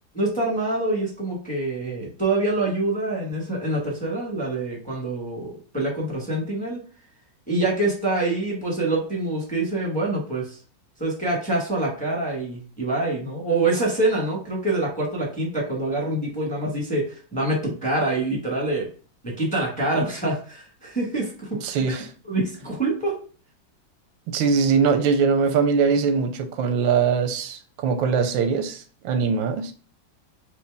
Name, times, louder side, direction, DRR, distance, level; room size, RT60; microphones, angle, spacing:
voice 1, 0.1-6.8 7.5-10.6 11.0-18.9 19.2-22.0 22.3-23.1, right 2 dB, 5° left, 1.0 m, -25 dB
voice 2, 21.6-22.1 24.3-29.7, right 5 dB, 90° right, 1.4 m, -22 dB
4.8 x 2.6 x 3.4 m
omnidirectional pair, 2.1 m